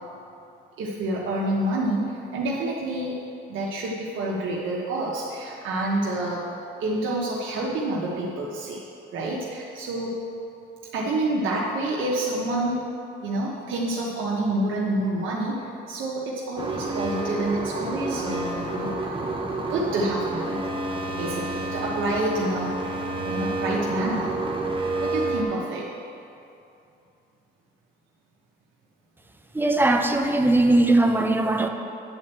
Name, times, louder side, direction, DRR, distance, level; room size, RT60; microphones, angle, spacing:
voice 1, 0.8-3.2 3.5-6.5 6.8-8.8 9.1-10.2 10.9-12.9 13.2-19.1 19.6-20.6 21.2-23.0 23.3-24.4 25.0-25.9, right 1 dB, 80° right, -5 dB, 1.2 m, -28 dB
sound 1, 16.6-25.4, right 2 dB, 25° right, 1.1 m, -29 dB
voice 2, 29.5-31.7, right 2 dB, 10° right, 4 dB, 0.8 m, -20 dB
9.6 x 4.4 x 7.6 m, 2.6 s
cardioid pair, 90°, 20 cm